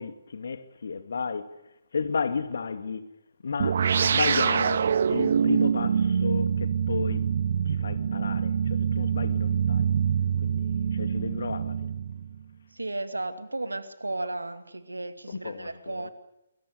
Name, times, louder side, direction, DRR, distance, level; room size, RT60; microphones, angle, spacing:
voice 1, 0.0-1.5 1.9-3.1 3.4-7.3 7.7-9.9 10.4-11.9 15.3-16.1, left 5 dB, 60° left, 2.3 m, -33 dB
sound 1, 3.6-12.4, right 7 dB, 50° right, 1.0 m, -25 dB
voice 2, 12.7-16.1, right 2 dB, 80° right, 2.4 m, -34 dB
28.0 x 22.0 x 6.8 m
figure-of-eight pair, 135°, 0 cm